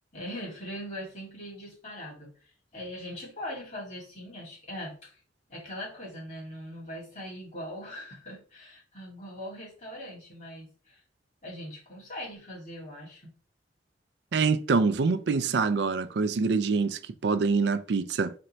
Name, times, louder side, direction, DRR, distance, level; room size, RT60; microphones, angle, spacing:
voice 1, 0.1-5.2 5.5-11.0 11.4-13.3, equal, 40° left, 2.4 m, -41 dB
voice 2, 14.3-18.3, right 4 dB, 70° right, 0.4 m, -25 dB
4.3 x 2.6 x 4.3 m
head